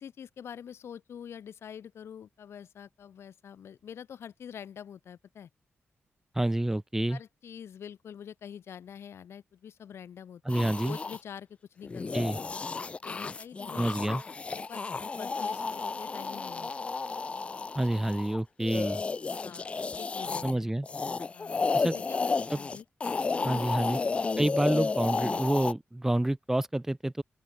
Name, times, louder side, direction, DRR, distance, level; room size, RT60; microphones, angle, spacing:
voice 1, 0.0-5.5 7.1-12.2 13.0-13.8 14.5-16.7 18.7-19.0 19.4-20.7 21.3-22.8, left 8 dB, 80° left, 3.9 m, -46 dB
voice 2, 6.3-7.2 10.4-11.0 12.1-12.4 13.7-14.2 17.7-19.0 20.4-20.9 21.7-21.9 22.5-22.6 23.4-24.0 24.4-27.2, right 1 dB, 10° right, 2.9 m, -28 dB
sound 1, 10.5-11.2 11.8-20.5 20.8-25.7, left 4 dB, 30° left, 0.4 m, -32 dB
open air
wide cardioid pair, 160°, 4 cm